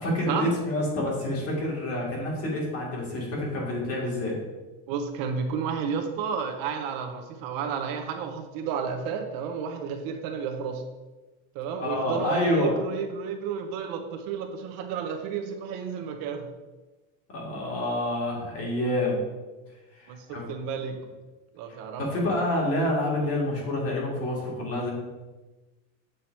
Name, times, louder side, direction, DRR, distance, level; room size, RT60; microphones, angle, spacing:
voice 1, 0.0-4.4 11.8-12.7 17.3-19.2 19.9-20.5 22.0-24.9, left 1 dB, 35° left, -2 dB, 1.9 m, -28 dB
voice 2, 4.9-10.8 11.5-16.5 20.1-21.0 21.5-22.3, right 6 dB, 55° right, 5 dB, 0.7 m, -32 dB
7.7 x 2.8 x 4.4 m, 1.2 s
cardioid pair, 145°, 41 cm